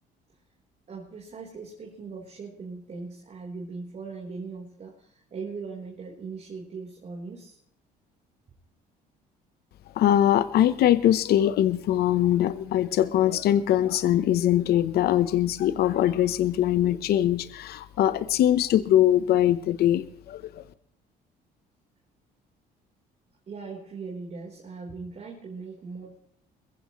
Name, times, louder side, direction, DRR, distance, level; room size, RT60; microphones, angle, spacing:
voice 1, 0.9-7.6 23.5-26.2, right 4 dB, 40° right, -3 dB, 3.9 m, -39 dB
voice 2, 10.0-20.6, left 12 dB, 70° left, 14 dB, 0.9 m, -22 dB
22.0 x 15.0 x 3.1 m, 0.69 s
cardioid pair, 110°, 17 cm